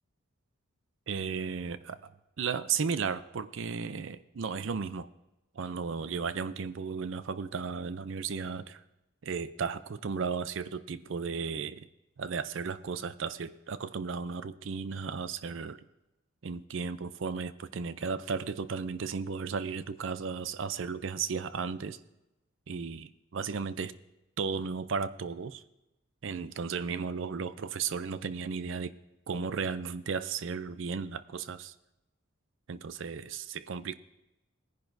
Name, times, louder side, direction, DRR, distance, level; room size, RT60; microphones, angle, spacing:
voice 1, 1.1-2.0 2.4-5.1 5.5-8.8 9.2-11.9 12.2-15.8 16.4-22.0 22.7-23.9 24.4-25.6 26.2-28.9 29.3-31.7 32.7-33.9, right 5 dB, 65° right, 14 dB, 0.5 m, -34 dB
19.0 x 10.5 x 2.6 m, 0.94 s
head